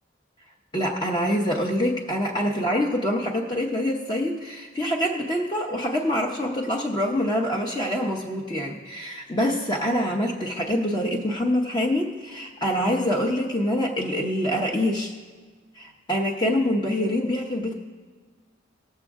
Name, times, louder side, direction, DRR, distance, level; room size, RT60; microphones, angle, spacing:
voice 1, 0.7-15.1 15.8-17.7, equal, 25° left, -2 dB, 0.8 m, -25 dB
18.5 x 7.4 x 3.6 m, 1.5 s
head